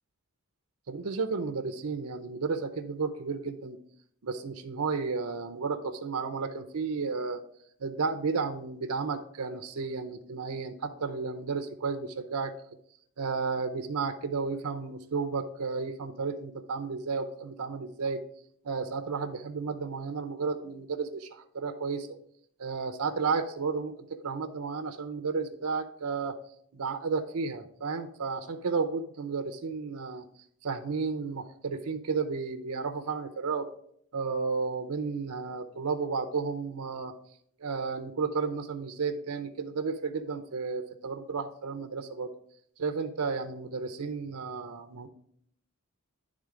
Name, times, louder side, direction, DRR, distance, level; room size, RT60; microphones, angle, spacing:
voice 1, 0.9-3.8 4.2-7.4 7.8-12.5 13.2-18.2 18.6-22.1 22.6-26.3 26.7-30.2 30.6-33.7 34.1-37.1 37.6-42.3 42.8-45.1, right 4 dB, 90° right, 7 dB, 0.7 m, -32 dB
11.0 x 3.7 x 4.9 m, 0.66 s
head